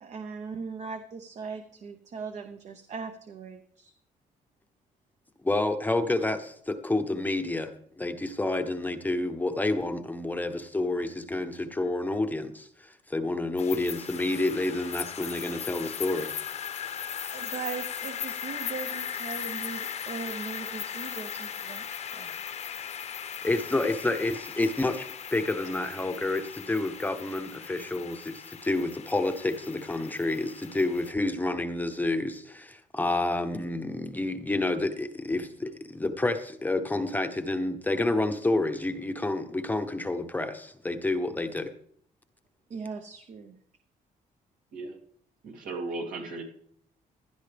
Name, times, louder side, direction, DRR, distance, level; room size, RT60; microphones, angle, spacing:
voice 1, 0.0-3.9 17.3-21.9 22.1-22.4 42.7-43.6, right 5 dB, 50° right, 6 dB, 0.9 m, -39 dB
voice 2, 5.4-7.7 8.0-16.3 23.4-41.7, left 2 dB, 10° left, 7 dB, 0.8 m, -29 dB
sound 1, 13.6-31.1, left 8 dB, 50° left, 0.8 m, -38 dB
voice 3, 45.4-46.4, right 2 dB, 70° right, 1 dB, 2.6 m, -36 dB
16.5 x 11.5 x 3.4 m, 0.65 s
cardioid pair, 125°, 15 cm